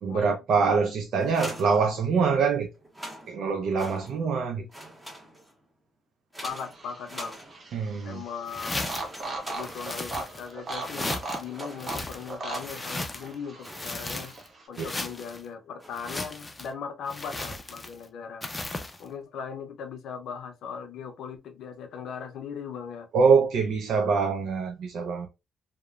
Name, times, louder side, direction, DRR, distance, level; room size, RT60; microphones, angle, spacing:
voice 1, 0.0-2.7 3.3-4.7 7.7-8.2 14.8-14.9 23.1-25.3, right 5 dB, 70° right, 0.4 m, -24 dB
sound 1, 1.2-2.4 2.8-4.4 4.7-5.7 6.3-7.9 8.6-10.3 10.6-13.0 13.6-14.3 15.0-15.4 15.8-16.3, equal, 10° right, 0.8 m, -45 dB
voice 2, 6.4-7.4 8.0-8.9 9.5-14.4 14.7-18.4 19.0-23.1, left 6 dB, 75° left, 0.5 m, -39 dB
sound 2, 6.5-14.7, right 2 dB, 40° right, 0.8 m, -39 dB
sound 3, 8.5-9.2 9.6-10.5 10.8-11.4 11.8-13.3 13.6-14.5 14.7-15.4 15.9-16.7 17.1-18.0 18.4-19.0, left 2 dB, 20° left, 0.4 m, -36 dB
2.9 x 2.1 x 2.3 m
cardioid pair, 90°, 0 cm